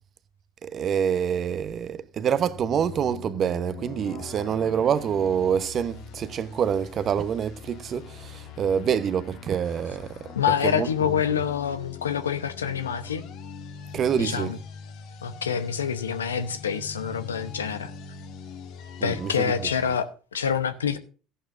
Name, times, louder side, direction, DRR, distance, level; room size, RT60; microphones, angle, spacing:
voice 1, 0.6-10.3 10.6-11.1 13.9-14.5 19.0-19.5, right 8 dB, 45° right, 0.9 m, -26 dB
sound 1, 2.1-20.0, left 6 dB, 65° left, 1.5 m, -42 dB
voice 2, 10.3-13.2 14.1-14.6 15.2-17.9 19.0-21.0, left 8 dB, 90° left, 0.8 m, -26 dB
14.0 x 11.0 x 2.6 m
hypercardioid pair, 65°, 0 cm